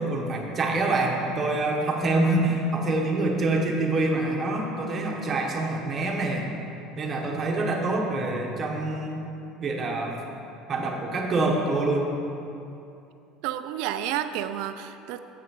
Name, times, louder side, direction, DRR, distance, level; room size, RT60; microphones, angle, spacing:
voice 1, 0.0-6.5 7.0-9.3 9.6-10.2 10.7-12.1, right 2 dB, 20° right, 0 dB, 1.0 m, -26 dB
voice 2, 13.4-15.2, right 11 dB, 65° right, 10 dB, 0.4 m, -30 dB
8.2 x 5.8 x 6.3 m, 2.7 s
cardioid pair, 165°, 0 cm